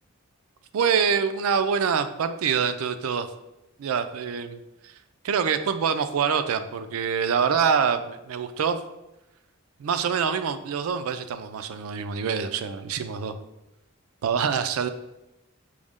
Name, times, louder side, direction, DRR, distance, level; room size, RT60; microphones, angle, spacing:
voice 1, 0.7-3.3 3.8-4.6 4.8-4.9 5.2-8.8 9.8-13.4 14.2-14.9, right 6 dB, 85° right, 10 dB, 0.4 m, -25 dB
6.2 x 2.1 x 3.5 m, 0.92 s
head